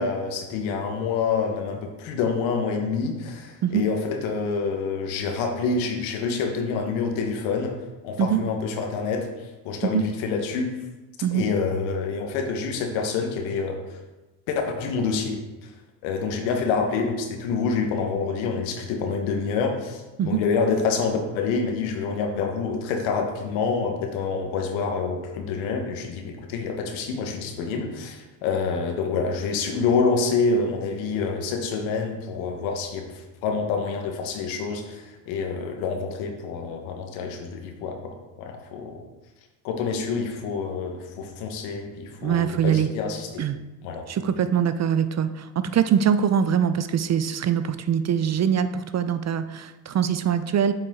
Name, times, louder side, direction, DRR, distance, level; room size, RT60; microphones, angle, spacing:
voice 1, 0.0-7.8 8.0-9.3 9.6-10.7 11.3-14.0 14.5-15.7 16.0-39.0 39.6-43.4 43.8-44.0, left 5 dB, 75° left, 4 dB, 1.3 m, -27 dB
voice 2, 42.2-42.9 43.4-43.6 44.1-50.7, right 8 dB, 35° right, 12 dB, 0.5 m, -23 dB
7.5 x 5.6 x 3.7 m, 1.1 s
hypercardioid pair, 60°, 47 cm